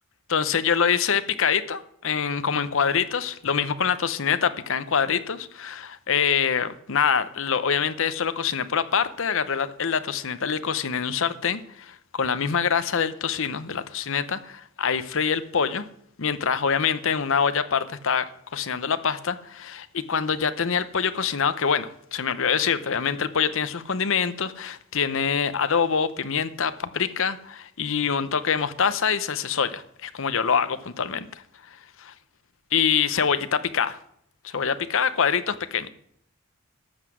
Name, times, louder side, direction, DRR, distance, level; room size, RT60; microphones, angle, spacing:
voice 1, 0.3-15.8 16.2-18.3 18.5-31.3 32.0-32.1 32.7-34.0 34.4-35.9, left 6 dB, 65° left, 13 dB, 0.8 m, -25 dB
13.0 x 8.0 x 6.2 m, 0.71 s
head